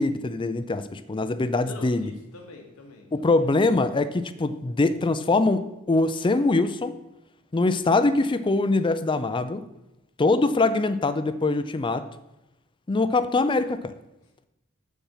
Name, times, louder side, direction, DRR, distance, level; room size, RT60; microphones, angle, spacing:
voice 1, 0.0-2.1 3.1-6.9 7.5-9.6 10.2-12.1 12.9-13.9, left 3 dB, 25° left, 12 dB, 0.4 m, -23 dB
voice 2, 1.6-3.5, left 3 dB, 90° left, 2 dB, 1.8 m, -45 dB
7.5 x 7.0 x 5.6 m, 0.93 s
head